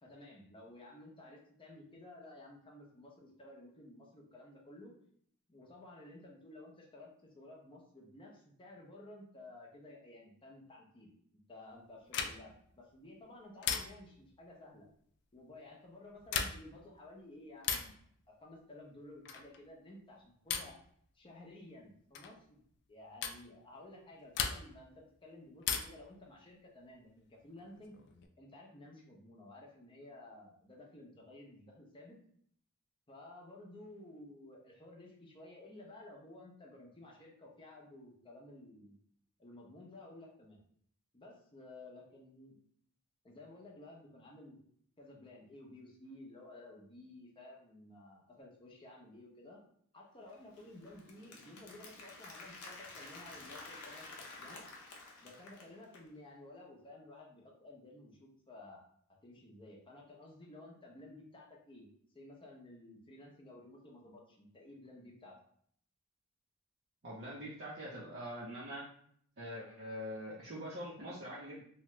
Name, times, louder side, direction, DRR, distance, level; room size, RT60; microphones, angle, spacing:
voice 1, 0.0-4.9 5.5-11.1 11.5-14.9 15.3-20.7 21.1-27.9 28.4-32.2 33.1-39.0 39.4-40.6 41.1-42.6 43.2-44.6 45.0-49.6 49.9-54.6 55.2-58.9 59.2-61.9 62.1-65.4, left 1 dB, 25° left, -2 dB, 0.7 m, -54 dB
sound 1, 12.1-12.6 13.6-14.2 16.2-16.8 17.6-18.0 19.3-19.6 20.5-20.8 22.1-22.4 23.2-23.4 24.3-24.9 25.6-26.1 27.6-28.3, left 7 dB, 50° left, 0.3 m, -37 dB
Applause, 50.3-56.1, left 3 dB, 80° left, 0.7 m, -51 dB
voice 2, 67.0-68.8 69.4-71.6, equal, 50° right, -7 dB, 0.6 m, -44 dB
2.9 x 2.3 x 3.0 m, 0.64 s
head